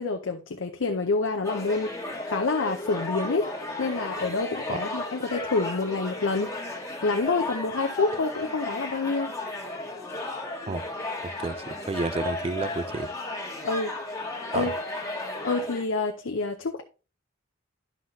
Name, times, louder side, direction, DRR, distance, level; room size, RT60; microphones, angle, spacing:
voice 1, 0.0-3.5 3.8-6.5 7.0-9.3 10.7-10.8 13.6-14.0 14.5-14.7 15.4-16.8, left 3 dB, 75° left, 0.6 m, -27 dB
sound 1, 1.4-15.8, left 2 dB, 15° left, 1.5 m, -34 dB
voice 2, 11.2-13.1 14.5-14.7, right 3 dB, 30° right, 0.4 m, -31 dB
11.0 x 5.7 x 2.7 m
head